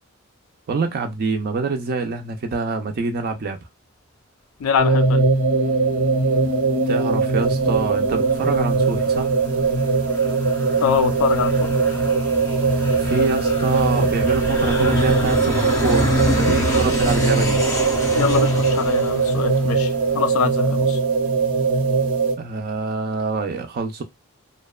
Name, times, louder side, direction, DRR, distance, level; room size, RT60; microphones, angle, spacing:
voice 1, 0.7-3.6 6.9-9.3 13.0-17.6 22.4-24.0, right 4 dB, 45° right, 0.4 m, -25 dB
voice 2, 4.6-5.3 10.8-11.7 18.1-21.0, left 6 dB, 70° left, 0.4 m, -23 dB
sound 1, 4.8-22.4, right 4 dB, 85° right, 0.7 m, -20 dB
Aircraft, 7.2-20.4, left 1 dB, 15° left, 0.6 m, -28 dB
2.6 x 2.1 x 2.2 m
head